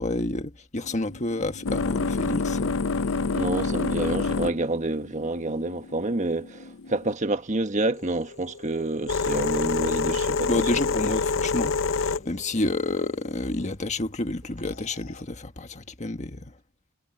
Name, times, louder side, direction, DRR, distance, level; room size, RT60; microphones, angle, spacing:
voice 1, 0.0-2.7 10.5-16.4, left 2 dB, 35° left, 1.5 m, -29 dB
sound 1, 0.8-7.1 7.9-13.7 14.7-15.2, left 4 dB, 65° left, 0.6 m, -28 dB
voice 2, 3.3-10.7, right 2 dB, 35° right, 1.4 m, -28 dB
head